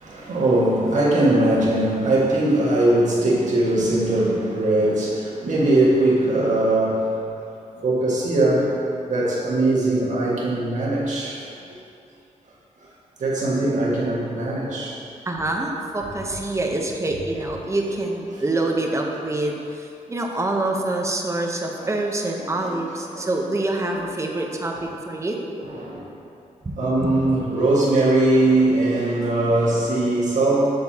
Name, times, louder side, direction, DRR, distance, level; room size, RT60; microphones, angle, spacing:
voice 1, 0.0-7.1 7.7-11.5 13.2-15.0 21.8-21.9 22.6-22.8 23.1-23.3 25.6-26.1 26.8-30.7, right 2 dB, 65° right, -4 dB, 1.7 m, -20 dB
voice 2, 15.3-25.4 26.6-27.4, right 2 dB, 20° right, 1 dB, 0.8 m, -26 dB
7.8 x 6.8 x 2.9 m, 2.5 s
cardioid pair, 90°, 13 cm